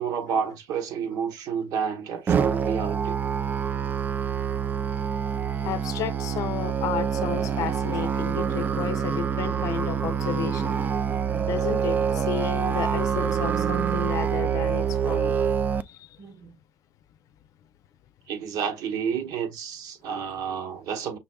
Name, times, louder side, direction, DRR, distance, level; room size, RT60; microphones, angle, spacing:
voice 1, 0.0-3.2 16.2-16.5 18.3-21.2, right 7 dB, 80° right, 1.2 m, -30 dB
Musical instrument, 2.3-15.8, right 7 dB, 30° right, 0.4 m, -26 dB
voice 2, 5.6-10.8 11.4-15.4 15.8-16.2, left 11 dB, 65° left, 0.6 m, -33 dB
6.0 x 3.5 x 2.3 m
cardioid pair, 160°, 6 cm